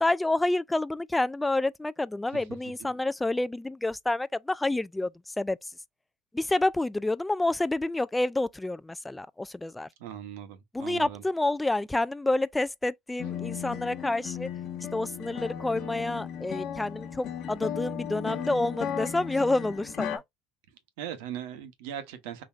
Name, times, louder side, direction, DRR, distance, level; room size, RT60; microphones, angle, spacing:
voice 1, 0.0-5.7 6.3-9.9 10.7-14.5 14.9-20.2, left 2 dB, 10° left, 0.3 m, -28 dB
voice 2, 10.0-11.2 21.0-22.4, right 10 dB, 80° right, 1.0 m, -39 dB
sound 1, 13.2-20.2, left 8 dB, 60° left, 1.1 m, -36 dB
3.9 x 3.1 x 2.4 m
hypercardioid pair, 85°, 0 cm